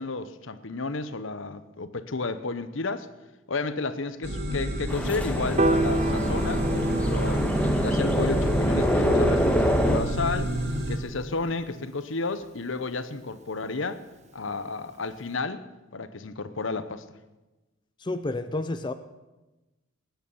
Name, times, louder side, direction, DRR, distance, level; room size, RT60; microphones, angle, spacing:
voice 1, 0.0-3.1 3.5-10.6 10.9-14.0 14.3-15.6 15.9-17.0, left 3 dB, 70° left, 13 dB, 1.0 m, -32 dB
sound 1, 4.2-11.0, equal, 55° right, 2.4 m, -30 dB
sound 2, 4.9-10.0, equal, 5° left, 1.4 m, -25 dB
Piano, 5.6-11.9, right 1 dB, 35° right, 0.8 m, -31 dB
voice 2, 18.0-18.9, left 2 dB, 20° left, 9 dB, 0.5 m, -30 dB
20.0 x 9.2 x 7.1 m, 1.1 s
head